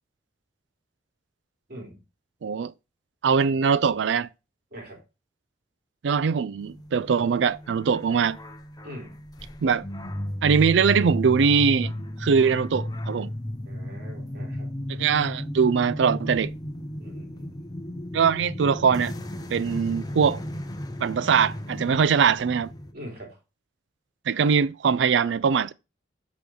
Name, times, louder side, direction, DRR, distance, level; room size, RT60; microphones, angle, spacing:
voice 1, 2.4-2.7 3.2-4.3 6.0-8.4 9.6-9.8 10.4-11.9 12.2-13.3 14.9-16.5 18.1-19.1 19.5-20.4 21.0-22.7 24.3-25.7, right 6 dB, 75° right, 0.4 m, -22 dB
sound 1, 6.6-22.9, left 1 dB, 20° left, 0.8 m, -34 dB
voice 2, 8.8-9.2 13.6-14.7 17.0-17.7 22.9-23.3, equal, 60° right, 3.5 m, -42 dB
5.1 x 5.0 x 6.2 m
head